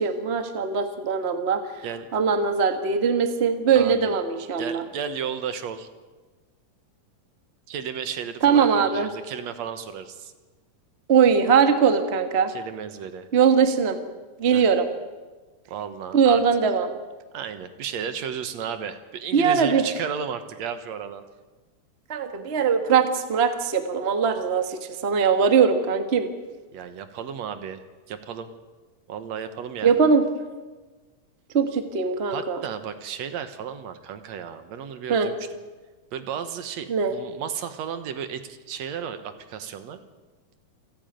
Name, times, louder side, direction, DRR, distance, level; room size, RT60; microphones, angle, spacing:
voice 1, 0.0-1.8 2.1-4.8 8.4-9.1 11.1-12.5 13.3-14.0 14.4-14.9 16.1-16.9 19.3-19.8 22.1-26.3 29.8-30.2 31.5-32.6 35.1-35.3 36.9-37.1, right 6 dB, 80° right, 8 dB, 0.5 m, -21 dB
voice 2, 3.7-4.2 4.6-5.9 7.7-10.3 12.5-13.3 14.5-14.6 15.7-16.4 17.3-21.2 26.7-28.5 29.1-30.0 32.3-35.4 36.1-40.0, right 7 dB, 65° right, 10 dB, 2.1 m, -34 dB
28.0 x 10.5 x 9.1 m, 1.3 s
omnidirectional pair, 3.8 m